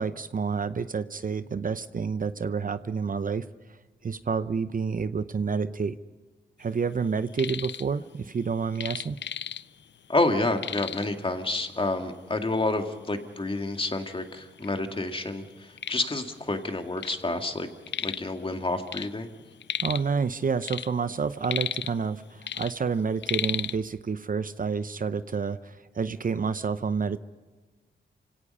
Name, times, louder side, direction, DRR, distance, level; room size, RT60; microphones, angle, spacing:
voice 1, 0.0-3.4 4.0-5.9 6.6-9.2 19.8-27.2, right 5 dB, 50° right, 13 dB, 0.7 m, -29 dB
sound 1, 7.1-7.9 8.1-9.9 10.2-10.3 10.6-11.2 12.0-12.1 12.6-12.7 13.5-13.6 13.9-14.7 15.2-17.3 17.5-18.3 18.6-20.1 20.5-22.1 22.4-23.8, left 9 dB, 70° left, 0.6 m, -34 dB
voice 2, 10.1-17.7 18.0-19.3, left 2 dB, 30° left, 5 dB, 2.2 m, -29 dB
28.0 x 17.5 x 5.5 m, 1.3 s
cardioid pair, 75°, 19 cm